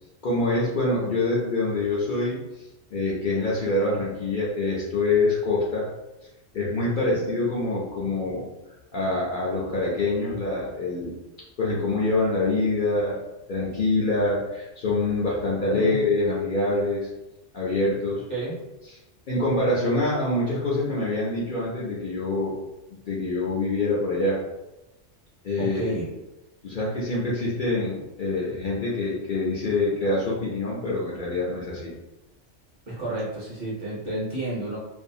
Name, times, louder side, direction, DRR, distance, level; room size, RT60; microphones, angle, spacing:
voice 1, 0.2-2.4 2.9-5.9 6.5-8.5 8.9-11.1 11.6-13.2 13.5-17.1 17.5-18.2 19.3-22.6 23.1-24.4 25.4-25.9 26.6-31.9, left 2 dB, 55° left, -6 dB, 0.6 m, -25 dB
voice 2, 25.6-26.0 32.9-34.8, right 2 dB, 45° right, -7 dB, 0.8 m, -31 dB
2.5 x 2.3 x 2.6 m, 1.0 s
omnidirectional pair, 1.3 m